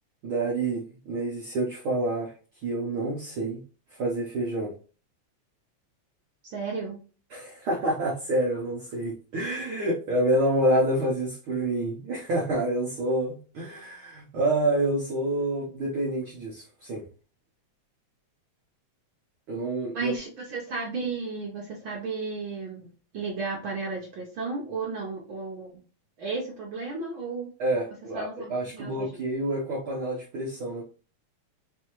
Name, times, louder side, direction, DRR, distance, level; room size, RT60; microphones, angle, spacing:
voice 1, 0.2-2.3 2.6-3.6 4.0-4.7 7.3-17.0 19.5-20.1 27.6-30.8, right 1 dB, 65° right, -3 dB, 1.3 m, -28 dB
voice 2, 6.4-7.0 19.9-22.9 23.1-25.8 26.2-27.5 28.1-29.2, right 4 dB, 80° right, -3 dB, 1.1 m, -33 dB
4.6 x 2.7 x 3.0 m, 0.37 s
omnidirectional pair, 3.3 m